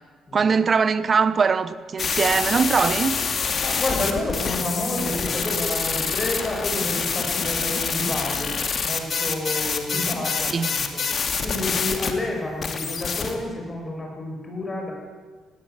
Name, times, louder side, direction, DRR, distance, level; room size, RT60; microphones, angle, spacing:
voice 1, 0.3-3.2 10.5-10.7, right 5 dB, 40° right, 1.1 m, -21 dB
sound 1, 2.0-12.1 12.6-13.4, left 5 dB, 50° left, 2.5 m, -26 dB
voice 2, 3.6-11.0 11.4-14.9, left 1 dB, 25° left, 7.2 m, -30 dB
18.5 x 17.5 x 8.3 m
cardioid pair, 90°, 0 cm